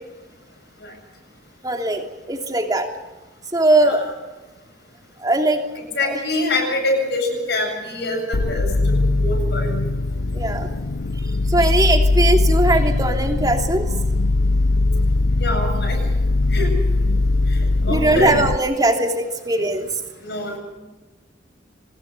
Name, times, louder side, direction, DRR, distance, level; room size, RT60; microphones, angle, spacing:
voice 1, 1.6-2.9 3.5-4.0 5.2-5.6 6.1-6.2 10.3-10.7 11.5-13.8 17.9-19.9, right 2 dB, 20° right, 3 dB, 3.0 m, -20 dB
voice 2, 5.9-9.7 15.4-16.0 16.5-16.7 17.5-17.6 17.8-18.4 20.2-20.6, left 2 dB, 60° left, 1 dB, 7.9 m, -25 dB
sound 1, 8.3-18.6, left 2 dB, 80° left, 0.7 m, -20 dB
25.0 x 20.5 x 6.8 m, 1.2 s
head